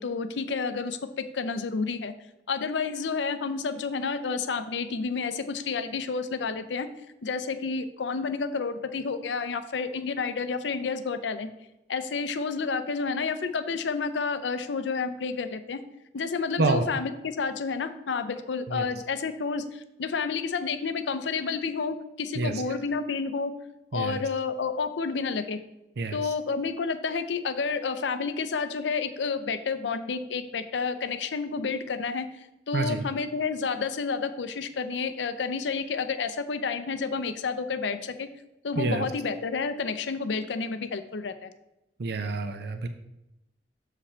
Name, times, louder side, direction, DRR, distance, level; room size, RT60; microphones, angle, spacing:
voice 1, 0.0-2.1 2.5-6.9 7.2-11.5 11.9-15.8 16.1-23.5 23.9-25.6 26.1-38.3 38.6-41.5, left 5 dB, 85° left, 10 dB, 0.5 m, -30 dB
voice 2, 32.7-33.0 38.8-39.0 42.0-42.9, right 3 dB, 60° right, 7 dB, 0.5 m, -27 dB
7.1 x 5.0 x 4.3 m, 0.91 s
head